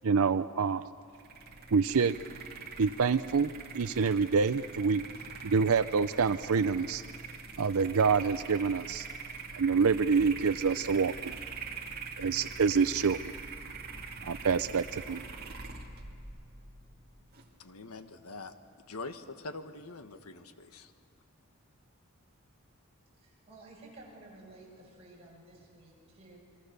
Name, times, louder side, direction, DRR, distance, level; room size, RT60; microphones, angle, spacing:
voice 1, 0.0-0.8 1.7-2.1 2.8-5.0 5.4-7.0 7.6-9.1 9.5-11.4 12.2-13.3 14.2-15.2, right 5 dB, 75° right, 12 dB, 0.5 m, -27 dB
sound 1, 1.1-17.5, right 4 dB, 45° right, 2.4 m, -43 dB
voice 2, 17.6-18.5 18.9-20.9, left 3 dB, 85° left, 9 dB, 1.4 m, -44 dB
voice 3, 23.1-26.4, right 2 dB, 30° right, -4 dB, 8.0 m, -53 dB
28.0 x 23.5 x 6.7 m, 2.5 s
head